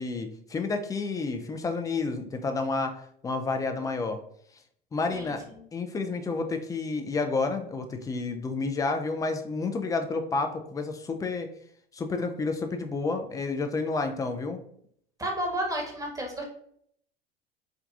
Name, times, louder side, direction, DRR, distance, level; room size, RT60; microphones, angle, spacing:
voice 1, 0.0-2.9 3.2-4.2 4.9-5.4 5.7-11.5 11.9-14.6, left 3 dB, 10° left, 5 dB, 0.3 m, -30 dB
voice 2, 15.2-16.4, right 1 dB, 10° right, 1 dB, 1.0 m, -31 dB
4.6 x 2.3 x 2.4 m, 0.66 s
hypercardioid pair, 80°, 32 cm